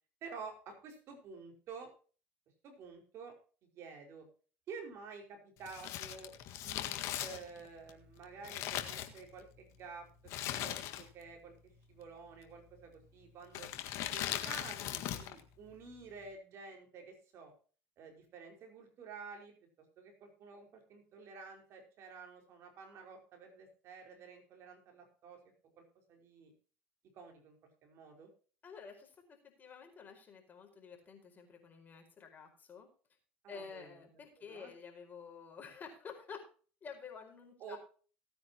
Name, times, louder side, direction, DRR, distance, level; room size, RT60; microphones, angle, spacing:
voice 1, 0.2-1.9 2.6-3.3 3.7-4.3 4.7-6.3 6.6-10.1 10.6-13.7 14.1-17.5 18.0-19.5 20.0-25.4 25.8-25.9 26.1-26.5 27.1-28.3 33.4-34.7 37.6-37.8, right 5 dB, 50° right, 3 dB, 5.1 m, -50 dB
Crumpling crinkling, 5.6-9.6 10.3-11.3 11.5-11.6 12.5-12.8 13.5-15.4 15.7-15.8, left 12 dB, 60° left, 1.8 m, -39 dB
voice 2, 28.6-32.9 33.5-36.4 36.8-37.8, left 6 dB, 35° left, 3 dB, 4.8 m, -50 dB
18.0 x 9.5 x 3.0 m, 0.39 s
supercardioid pair, 90°, 6 cm